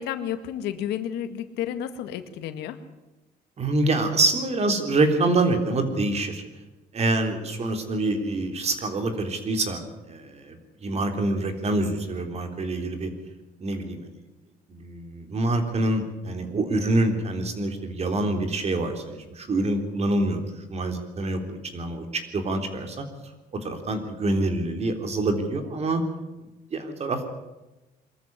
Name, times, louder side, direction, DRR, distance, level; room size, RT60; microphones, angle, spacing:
voice 1, 0.0-2.8, left 10 dB, 85° left, 9 dB, 1.9 m, -31 dB
voice 2, 3.6-6.4 6.9-9.8 10.1-13.1 13.6-14.0 14.7-23.1 23.5-26.0 26.7-27.3, right 2 dB, 40° right, 6 dB, 3.7 m, -26 dB
23.5 x 13.5 x 9.6 m, 1.0 s
cardioid pair, 110°, 17 cm